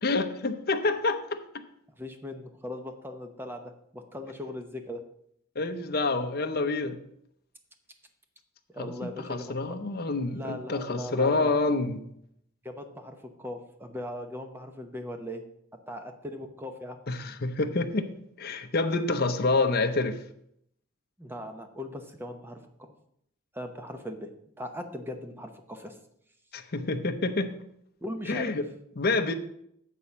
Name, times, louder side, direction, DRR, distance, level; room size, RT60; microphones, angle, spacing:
voice 1, 0.0-1.4 5.6-7.0 8.8-12.0 17.1-18.1 18.4-20.2 26.5-27.5 28.3-28.6 29.0-29.3, left 3 dB, 50° left, 7 dB, 0.7 m, -27 dB
voice 2, 2.0-5.1 8.7-9.6 10.2-11.5 12.6-15.4 15.7-17.0 21.2-22.9 23.5-26.0 28.0-28.6, left 1 dB, 10° right, 6 dB, 0.8 m, -39 dB
8.4 x 4.2 x 7.1 m, 0.72 s
head